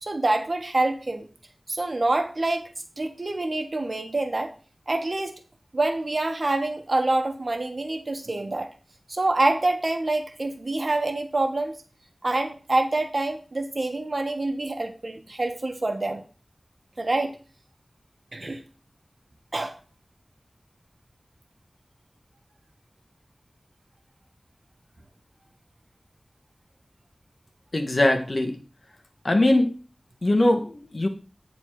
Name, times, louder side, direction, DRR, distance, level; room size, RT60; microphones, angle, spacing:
voice 1, 0.0-1.3 1.7-2.7 3.0-4.5 4.9-5.4 5.7-8.7 9.1-11.7 12.2-16.2 17.0-17.4 18.3-18.6 19.5-19.7, right 2 dB, 60° right, 5 dB, 1.4 m, -26 dB
voice 2, 27.7-28.6 29.2-29.7 30.2-31.1, left 1 dB, 60° left, 5 dB, 1.6 m, -21 dB
9.8 x 4.2 x 4.8 m, 0.37 s
wide cardioid pair, 45°, 0 cm